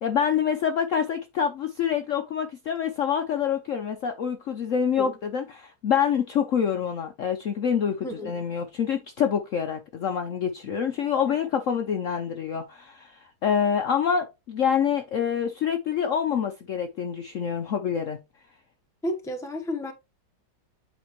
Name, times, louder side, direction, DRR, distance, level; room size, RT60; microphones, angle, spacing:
voice 1, 0.0-18.2, left 7 dB, 60° left, 0.8 m, -26 dB
voice 2, 8.0-8.3 11.2-11.4 19.0-19.9, left 1 dB, ahead, 0.8 m, -32 dB
8.2 x 4.3 x 3.0 m
omnidirectional pair, 1.9 m